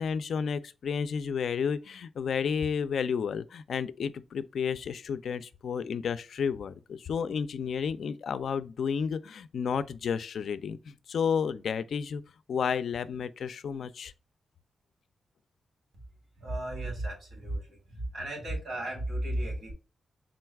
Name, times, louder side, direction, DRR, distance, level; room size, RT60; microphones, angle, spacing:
voice 1, 0.0-12.2 12.5-14.1, left 6 dB, 75° left, 0.3 m, -31 dB
voice 2, 16.4-17.6 17.9-19.7, right 1 dB, 80° right, 2.3 m, -34 dB
3.8 x 2.3 x 4.5 m
cardioid pair, 75°, 0 cm